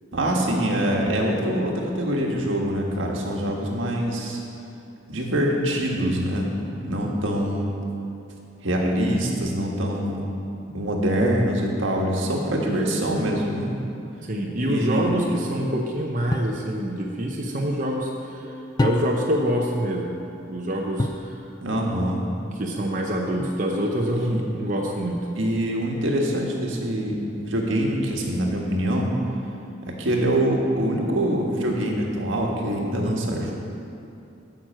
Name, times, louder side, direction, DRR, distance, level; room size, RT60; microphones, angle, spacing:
voice 1, 0.1-4.4 5.1-7.7 8.6-10.3 10.7-13.7 14.5-15.1 21.6-22.2 24.3-24.4 25.4-29.1 29.8-33.5, right 1 dB, 80° right, -1 dB, 1.5 m, -24 dB
voice 2, 14.2-18.5 18.8-20.2 20.5-21.3 22.4-25.2, equal, 40° right, -2 dB, 0.8 m, -26 dB
sound 1, 16.3-16.6 18.8-19.4 21.0-21.3 23.4-23.9, left 1 dB, 20° left, 0.3 m, -27 dB
9.5 x 6.1 x 7.5 m, 2.7 s
head